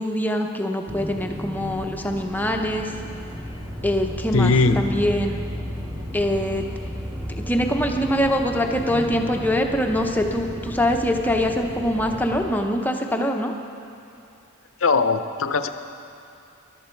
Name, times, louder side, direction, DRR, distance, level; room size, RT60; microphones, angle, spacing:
voice 1, 0.0-2.9 3.8-5.4 6.1-6.6 7.5-13.5, equal, 10° left, 3 dB, 0.7 m, -23 dB
sound 1, 0.9-12.4, equal, 15° right, 3.0 m, -33 dB
voice 2, 4.3-4.9 14.8-15.7, left 4 dB, 65° left, 9 dB, 0.7 m, -19 dB
21.0 x 12.0 x 4.5 m, 2.5 s
head